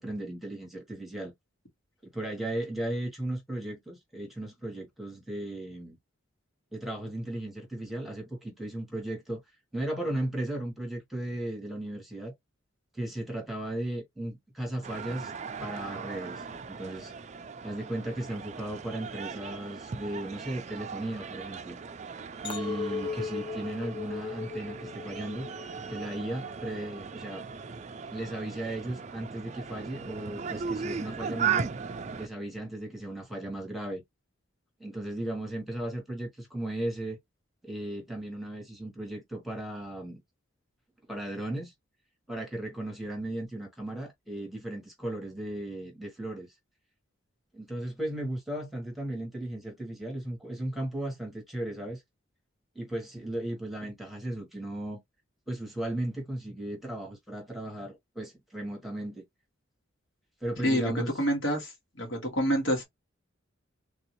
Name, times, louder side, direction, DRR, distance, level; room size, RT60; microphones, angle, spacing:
voice 1, 0.0-1.3 2.0-6.0 6.7-9.4 9.7-12.3 12.9-15.3 15.6-17.1 17.6-21.8 22.4-25.5 25.9-27.4 28.1-31.7 32.2-34.0 34.8-37.2 37.6-40.2 41.1-41.7 42.3-46.5 47.5-52.0 52.7-55.0 55.5-59.2 60.4-61.1, right 1 dB, ahead, 1.2 m, -36 dB
sound 1, 14.8-32.3, right 6 dB, 35° right, 0.4 m, -37 dB
Chink clink, 22.4-26.8 27.2-27.7, left 5 dB, 25° left, 0.6 m, -38 dB
voice 2, 60.6-61.7 62.0-62.8, equal, 75° left, 1.9 m, -27 dB
3.5 x 2.6 x 3.0 m
head